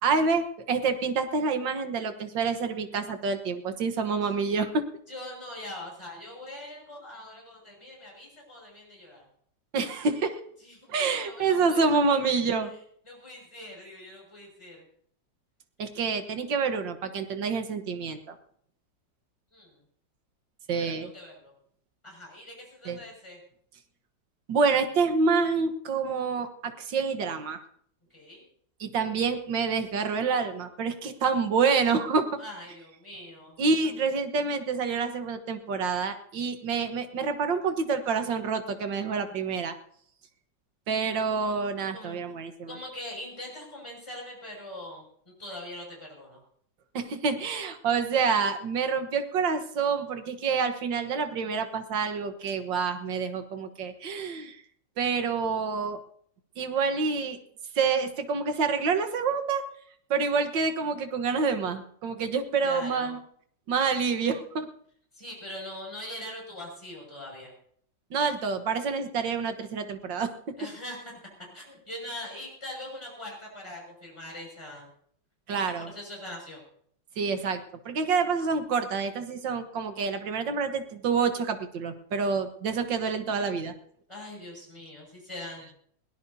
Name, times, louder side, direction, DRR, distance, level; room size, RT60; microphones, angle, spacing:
voice 1, 0.0-4.8 9.7-10.4 10.9-12.7 15.8-18.4 20.7-21.1 22.9-23.0 24.5-27.6 28.8-32.3 33.6-39.7 40.9-42.8 46.9-54.6 55.0-56.0 56.6-57.4 57.8-59.6 60.1-63.2 63.7-64.7 68.1-70.3 75.5-75.9 77.2-83.7, right 5 dB, 85° right, 8 dB, 2.0 m, -27 dB
voice 2, 5.1-9.3 10.6-12.2 13.0-14.8 19.5-19.7 20.7-21.5 22.0-23.4 28.1-28.4 32.4-33.9 41.9-42.2 42.7-45.1 45.4-46.4 62.6-63.2 65.1-67.5 70.6-71.1 71.4-74.9 75.5-76.6 84.1-85.7, left 1 dB, 15° left, -3 dB, 6.2 m, -42 dB
21.5 x 17.5 x 2.8 m, 0.62 s
omnidirectional pair, 1.9 m